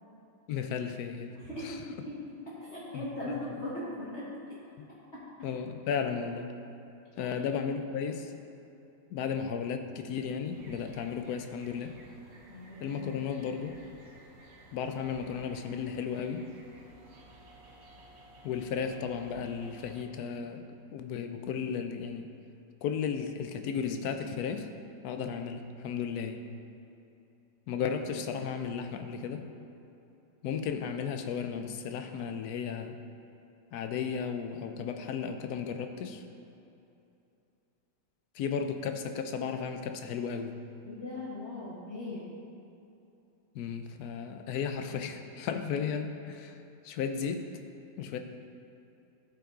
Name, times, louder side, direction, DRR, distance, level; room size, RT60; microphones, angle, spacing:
voice 1, 0.5-1.4 1.6-1.8 2.9-3.5 4.8-4.9 5.4-6.6 7.2-8.3 9.1-12.0 12.8-13.8 14.7-16.5 18.4-20.6 20.9-22.3 22.8-24.7 25.0-26.5 27.7-29.5 30.4-33.0 33.7-36.2 38.3-40.6 43.5-46.6 46.8-47.5 48.0-48.2, left 6 dB, 70° left, 7 dB, 1.1 m, -34 dB
voice 2, 1.3-4.6 5.1-5.2 7.2-7.4 12.5-13.0 40.8-42.3, left 1 dB, 40° left, -9 dB, 1.5 m, -39 dB
sound 1, 10.5-20.0, right 1 dB, 75° right, 1.6 m, -55 dB
12.5 x 5.7 x 3.7 m, 2.8 s
omnidirectional pair, 1.8 m